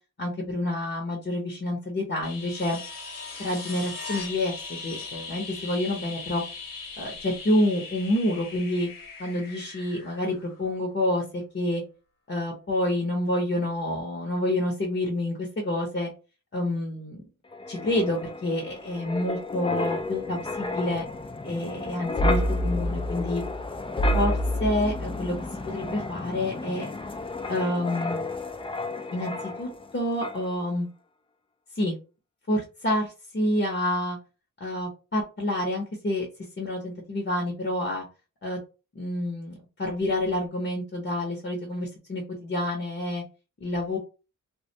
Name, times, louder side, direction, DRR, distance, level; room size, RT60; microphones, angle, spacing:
voice 1, 0.2-2.8 3.4-6.4 7.0-8.9 9.2-11.8 12.3-16.1 16.5-17.2 17.7-21.0 21.4-23.4 24.1-25.4 25.6-26.9 27.5-28.2 29.1-30.9 31.7-31.9 32.5-34.2 34.6-36.3 36.6-38.1 38.4-38.6 38.9-39.5 39.8-43.2 43.6-44.0, left 1 dB, 35° left, 0 dB, 0.8 m, -28 dB
sound 1, 2.2-10.9 13.3-13.4, left 4 dB, 80° left, 0.9 m, -39 dB
Wind, 17.5-29.9 30.2-30.5, left 1 dB, 15° left, 0.4 m, -30 dB
2.2 x 2.2 x 2.7 m, 0.32 s
cardioid pair, 55°, 34 cm